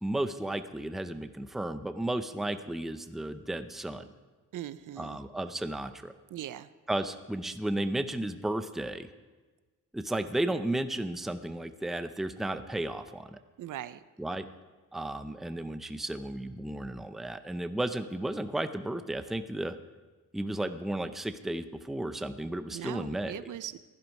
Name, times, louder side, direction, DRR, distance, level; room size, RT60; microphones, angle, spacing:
voice 1, 0.0-4.1 5.0-6.1 6.9-9.1 9.9-13.4 14.2-14.5 14.9-19.8 20.3-23.3, right 1 dB, ahead, 9 dB, 0.5 m, -33 dB
voice 2, 4.5-5.2 6.3-6.7 13.6-14.0 22.7-23.8, right 12 dB, 70° right, 15 dB, 0.6 m, -40 dB
16.0 x 11.0 x 5.3 m, 1.3 s
wide cardioid pair, 150°, 32 cm